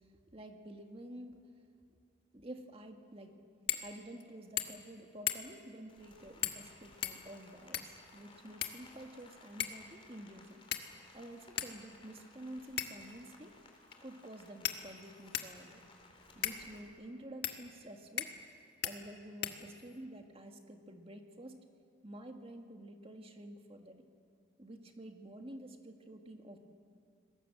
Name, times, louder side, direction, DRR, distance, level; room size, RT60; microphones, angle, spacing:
voice 1, 0.3-1.4 2.3-3.3 3.8-10.6 11.1-13.5 14.0-15.8 16.4-18.3 18.8-21.6 22.0-24.1 24.6-26.6, right 1 dB, 30° right, 4 dB, 1.8 m, -50 dB
sound 1, 3.7-3.9 4.2-4.3 4.6-4.9 5.3-5.7 6.4-6.7 7.0-8.0 8.6-9.2 9.6-9.9 10.7-11.1 11.6-11.7 12.8-13.1 13.9-14.0 14.6-15.6 16.4-16.6 17.4-17.6 18.2-18.5 18.8-19.0 19.4-20.0, left 10 dB, 55° left, 1.5 m, -38 dB
Rain, 5.9-16.8, left 3 dB, 25° left, 3.5 m, -60 dB
27.5 x 21.0 x 7.7 m, 2.3 s
head